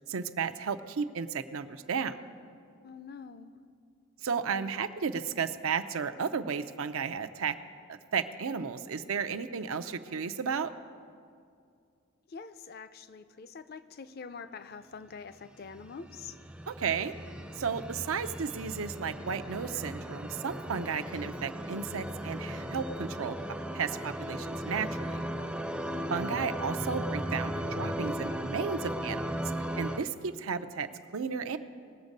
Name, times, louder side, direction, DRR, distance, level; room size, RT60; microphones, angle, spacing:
voice 1, 0.1-2.2 4.2-7.5 7.9-10.7 16.7-17.1 17.6-25.2 26.1-29.4 29.8-31.6, right 6 dB, 85° right, 9 dB, 0.5 m, -33 dB
voice 2, 2.8-3.6 12.3-16.4 25.9-26.4, left 5 dB, 50° left, 13 dB, 0.5 m, -45 dB
sound 1, 15.6-30.0, equal, 5° right, 0.4 m, -37 dB
19.5 x 7.2 x 5.3 m, 2.3 s
head